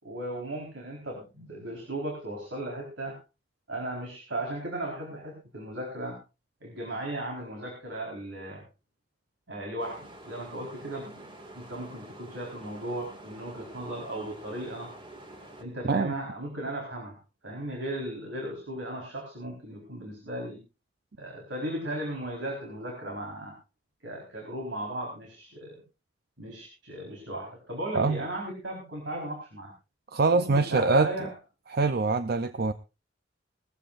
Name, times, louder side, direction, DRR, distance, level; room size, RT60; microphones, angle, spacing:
voice 1, 0.0-3.2 3.7-6.2 6.6-8.6 9.5-11.2 11.5-14.9 15.6-17.2 17.4-20.6 21.2-23.6 24.0-25.7 26.4-29.7 30.3-31.3, right 1 dB, 75° right, 0 dB, 4.3 m, -36 dB
sound 1, 9.8-15.6, right 1 dB, 25° right, 2.1 m, -47 dB
voice 2, 30.1-31.1 31.7-32.7, right 3 dB, 55° right, 11 dB, 0.6 m, -24 dB
20.0 x 14.5 x 2.5 m, 0.29 s
head